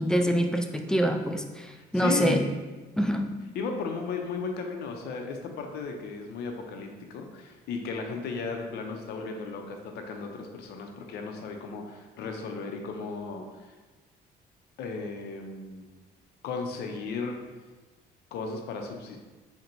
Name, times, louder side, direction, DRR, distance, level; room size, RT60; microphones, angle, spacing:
voice 1, 0.0-2.4 3.0-3.3, equal, 5° left, 4 dB, 0.3 m, -25 dB
voice 2, 1.9-2.4 3.5-13.4 14.8-15.8 16.4-17.4 18.3-19.2, left 4 dB, 75° left, 3 dB, 0.6 m, -35 dB
3.9 x 2.2 x 4.4 m, 1.2 s
cardioid pair, 110°, 17 cm